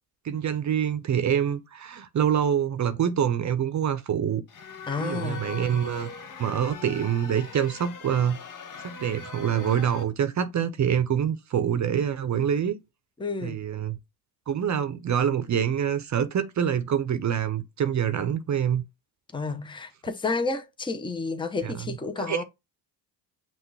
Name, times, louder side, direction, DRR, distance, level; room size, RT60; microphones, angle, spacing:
voice 1, 0.2-4.4 5.0-6.1 6.4-8.4 8.8-12.8 13.4-14.0 14.5-18.8 21.6-22.4, right 8 dB, 40° right, 0.8 m, -26 dB
sound 1, 4.5-10.0, left 4 dB, 45° left, 1.1 m, -40 dB
voice 2, 4.9-5.5 13.2-13.6 19.3-22.4, left 4 dB, 10° left, 0.8 m, -31 dB
5.8 x 2.6 x 3.3 m
cardioid pair, 90°, 43 cm